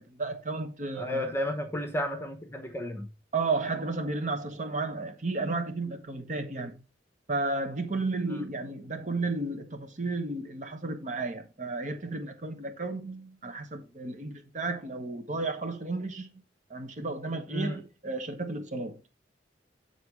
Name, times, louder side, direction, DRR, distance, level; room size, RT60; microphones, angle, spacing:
voice 1, 0.0-1.2 3.3-6.8 7.3-16.3 16.7-19.0, right 3 dB, 45° right, 1.0 m, -33 dB
voice 2, 1.0-3.1 8.2-8.4 17.5-17.8, left 1 dB, 15° left, 1.0 m, -33 dB
7.9 x 4.1 x 4.7 m
head